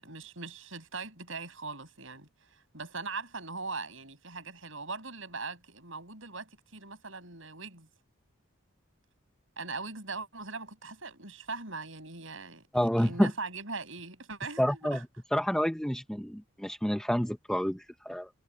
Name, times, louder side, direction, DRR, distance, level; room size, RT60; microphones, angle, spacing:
voice 1, 0.0-7.9 9.6-12.7 13.0-15.0, right 4 dB, 65° right, 7.9 m, -40 dB
voice 2, 12.7-13.3 14.6-15.0 15.3-18.3, equal, 5° left, 0.7 m, -28 dB
head